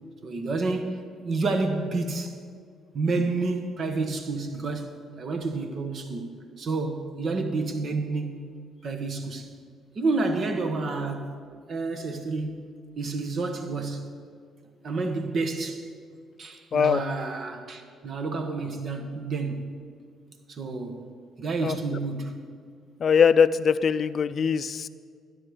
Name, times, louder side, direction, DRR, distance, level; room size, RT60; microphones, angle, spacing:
voice 1, 0.2-1.0 1.2-2.3 2.9-6.3 6.6-8.5 8.8-9.5 9.9-11.3 11.7-14.1 14.8-15.9 16.4-19.8 20.5-21.1 21.4-22.4, right 3 dB, 55° right, 1.5 m, -29 dB
voice 2, 23.0-24.9, left 6 dB, 55° left, 0.5 m, -21 dB
12.5 x 11.0 x 5.1 m
supercardioid pair, 65°, 0 cm